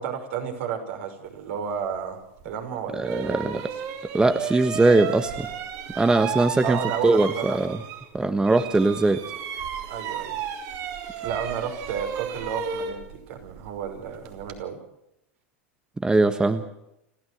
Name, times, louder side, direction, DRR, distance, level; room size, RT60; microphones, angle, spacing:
voice 1, 0.0-2.2 2.4-3.7 6.6-7.6 9.9-10.4 11.2-14.8, right 7 dB, 65° right, 4 dB, 5.8 m, -32 dB
sound 1, 2.4-2.5 3.0-8.2 8.4-14.6, right 7 dB, 50° right, 3.6 m, -34 dB
voice 2, 2.9-3.7 4.1-5.5 5.9-7.8 8.1-9.2 16.0-16.6, right 2 dB, 10° right, 10 dB, 1.4 m, -21 dB
30.0 x 13.0 x 7.9 m, 0.83 s
hypercardioid pair, 95°, 7 cm